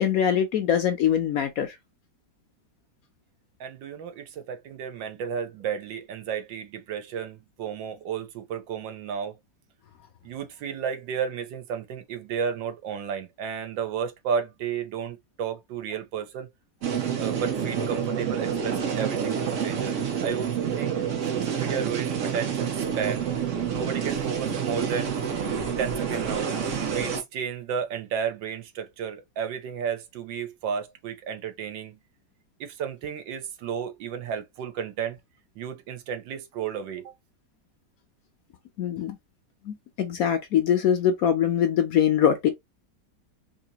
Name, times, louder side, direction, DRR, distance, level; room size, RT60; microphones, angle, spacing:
voice 1, 0.0-1.8 38.8-39.2 39.6-42.5, left 9 dB, 65° left, 0.9 m, -23 dB
voice 2, 3.6-9.4 10.2-16.5 17.2-23.3 23.7-25.2 25.8-26.5 26.9-32.0 32.6-35.2 35.6-37.1, right 7 dB, 85° right, 1.5 m, -33 dB
sound 1, 16.8-27.2, right 7 dB, 55° right, 0.9 m, -28 dB
4.2 x 2.6 x 2.8 m
omnidirectional pair, 2.0 m